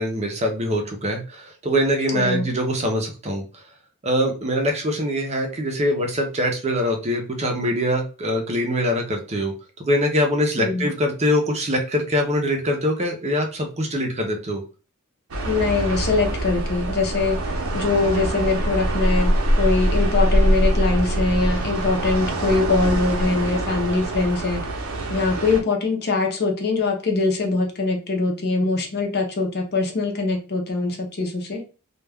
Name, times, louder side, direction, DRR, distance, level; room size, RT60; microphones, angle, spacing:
voice 1, 0.0-3.6 4.0-14.6, equal, 30° right, 3 dB, 0.6 m, -23 dB
voice 2, 2.1-2.4 10.6-10.9 15.4-24.6 25.1-31.6, left 3 dB, 50° left, 2 dB, 0.6 m, -23 dB
sound 1, 15.3-25.6, right 1 dB, 70° right, 0.7 m, -23 dB
2.3 x 2.2 x 3.3 m, 0.34 s
head